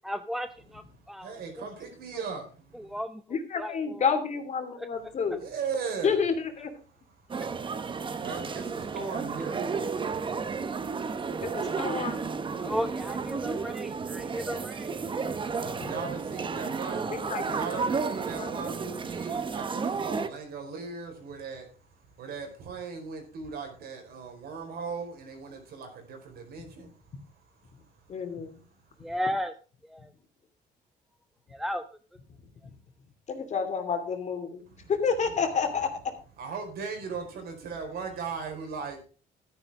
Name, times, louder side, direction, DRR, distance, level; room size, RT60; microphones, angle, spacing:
voice 1, 0.0-1.6 2.1-2.2 2.7-4.0 12.6-15.0 18.8-18.9 29.0-29.5 31.5-31.8, equal, ahead, 10 dB, 0.6 m, -35 dB
voice 2, 1.2-3.0 5.4-6.2 7.9-10.1 15.7-17.1 17.5-21.7 22.2-26.9 34.7-34.9 36.4-39.0, right 5 dB, 70° right, 4 dB, 4.8 m, -38 dB
voice 3, 3.3-5.4 6.0-6.7 11.4-12.2 15.6-15.9 17.1-17.6 18.4-18.5 28.1-28.6 33.3-34.6 34.9-35.9, left 6 dB, 45° left, 6 dB, 2.7 m, -29 dB
sound 1, 7.3-20.3, right 5 dB, 30° right, 1.0 m, -32 dB
12.5 x 10.5 x 3.7 m, 0.38 s
cardioid pair, 110°, 17 cm